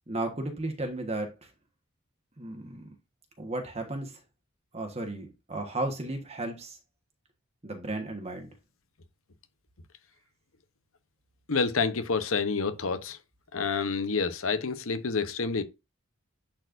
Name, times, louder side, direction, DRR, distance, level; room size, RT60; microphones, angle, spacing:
voice 1, 0.1-1.3 2.4-2.9 3.4-4.2 4.7-6.8 7.6-8.5, right 2 dB, 30° right, 1.3 m, -34 dB
voice 2, 11.5-13.2 13.5-15.6, left 4 dB, 70° left, 0.9 m, -28 dB
10.5 x 4.4 x 2.6 m
head